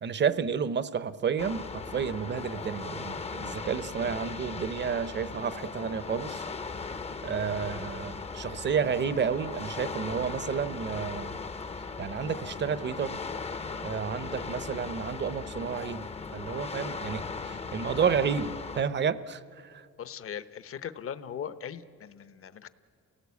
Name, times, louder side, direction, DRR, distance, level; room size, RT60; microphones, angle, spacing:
voice 1, 0.0-6.4 7.2-11.3 12.0-13.2 13.8-16.1 16.3-19.4, right 6 dB, 35° right, 15 dB, 0.7 m, -31 dB
sound 1, 1.4-18.8, left 4 dB, 20° left, 0.7 m, -38 dB
voice 2, 20.0-22.7, left 8 dB, 50° left, 14 dB, 0.9 m, -39 dB
28.0 x 18.0 x 8.3 m, 2.3 s
cardioid pair, 150°, 30 cm